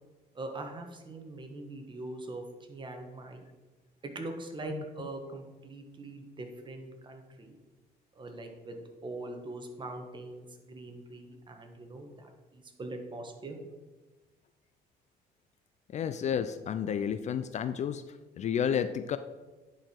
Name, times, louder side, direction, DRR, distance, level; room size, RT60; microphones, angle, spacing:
voice 1, 0.3-2.4 2.7-3.4 4.0-7.5 8.2-13.6, right 2 dB, 30° right, 4 dB, 1.4 m, -42 dB
voice 2, 15.9-19.2, left 8 dB, 45° left, 11 dB, 0.4 m, -31 dB
10.5 x 4.8 x 4.5 m, 1.2 s
cardioid pair, 110°, 17 cm